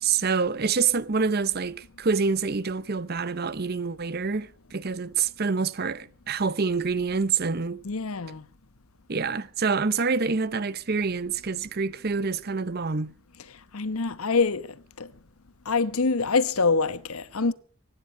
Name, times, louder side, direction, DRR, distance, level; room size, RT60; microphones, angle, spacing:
voice 1, 0.0-7.8 9.1-13.1, right 5 dB, 45° right, 0.7 m, -26 dB
voice 2, 7.8-8.4 13.7-14.6 15.7-17.5, left 4 dB, 80° left, 1.0 m, -25 dB
24.0 x 10.0 x 5.5 m
head